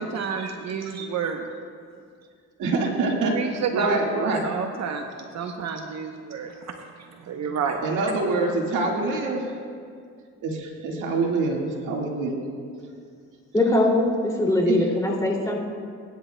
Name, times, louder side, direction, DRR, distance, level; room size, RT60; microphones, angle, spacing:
voice 1, 0.0-1.5 3.3-5.1 5.3-7.8, right 5 dB, 60° right, 4 dB, 0.8 m, -30 dB
voice 2, 2.6-3.4 3.7-4.4 7.8-9.5 10.4-12.3 14.7-14.8, right 3 dB, 85° right, 0 dB, 1.8 m, -25 dB
voice 3, 13.5-15.6, left 1 dB, 10° left, -2 dB, 2.5 m, -21 dB
22.5 x 10.5 x 2.2 m, 2.2 s
cardioid pair, 90°, 30 cm